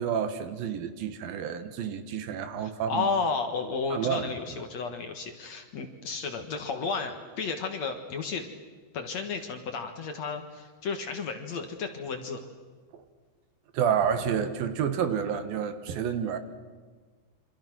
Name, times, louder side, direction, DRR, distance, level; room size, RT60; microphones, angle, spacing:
voice 1, 0.0-3.1 3.9-4.3 12.9-13.0 13.7-16.4, right 8 dB, 75° right, 10 dB, 3.1 m, -29 dB
voice 2, 2.6-8.5 8.9-12.4, left 4 dB, 55° left, 6 dB, 2.4 m, -32 dB
28.0 x 26.0 x 6.2 m, 1.5 s
omnidirectional pair, 4.4 m